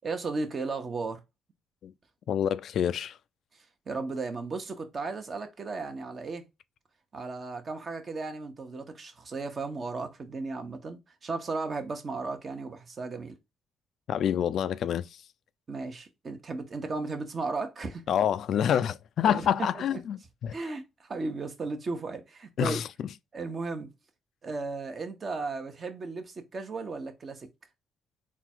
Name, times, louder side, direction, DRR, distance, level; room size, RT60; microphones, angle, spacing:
voice 1, 0.0-1.2 3.5-6.5 7.1-13.3 15.7-18.1 19.3-20.0 20.5-22.8 23.3-23.9 24.4-27.5, right 3 dB, 40° right, 1.1 m, -35 dB
voice 2, 2.3-3.2 14.1-15.2 18.1-20.6 22.6-23.1, left 9 dB, 70° left, 0.3 m, -27 dB
3.8 x 2.4 x 4.4 m
cardioid pair, 90°, 0 cm